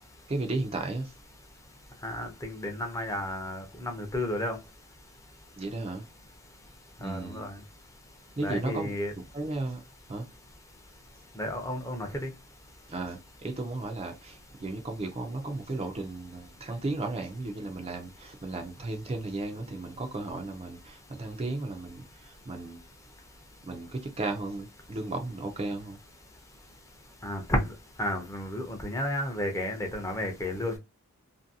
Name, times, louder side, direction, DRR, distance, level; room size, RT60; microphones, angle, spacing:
voice 1, 0.3-1.1 5.6-6.1 7.0-7.5 8.4-8.9 9.3-9.8 10.1-10.3 12.9-22.8 23.6-26.0, right 2 dB, 30° right, 0.5 m, -35 dB
voice 2, 2.0-4.6 7.0-7.6 8.4-9.1 11.4-12.3 27.2-27.7 28.0-30.8, left 1 dB, 15° left, 0.6 m, -32 dB
2.7 x 2.6 x 2.6 m
head